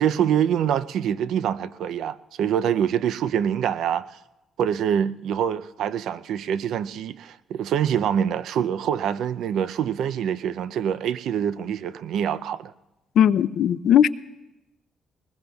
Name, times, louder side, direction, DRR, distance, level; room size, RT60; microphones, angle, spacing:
voice 1, 0.0-4.1 4.6-12.7, right 9 dB, 80° right, 0.4 m, -25 dB
voice 2, 13.2-14.1, left 9 dB, 70° left, 0.4 m, -18 dB
21.5 x 20.5 x 2.3 m
cardioid pair, 90°, 0 cm